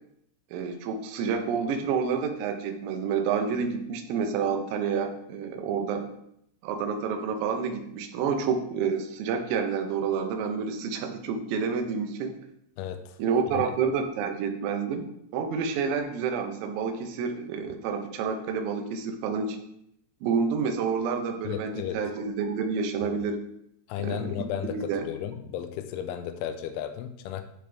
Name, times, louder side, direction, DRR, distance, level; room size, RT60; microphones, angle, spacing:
voice 1, 0.5-6.1 6.6-12.3 13.2-19.6 20.2-23.4 24.0-25.1, right 6 dB, 80° right, 5 dB, 3.6 m, -29 dB
voice 2, 12.8-13.2 13.6-13.7 21.4-22.0 23.0-23.2 23.9-27.5, left 10 dB, 85° left, 8 dB, 2.8 m, -34 dB
14.0 x 5.1 x 3.5 m, 0.74 s
omnidirectional pair, 6.0 m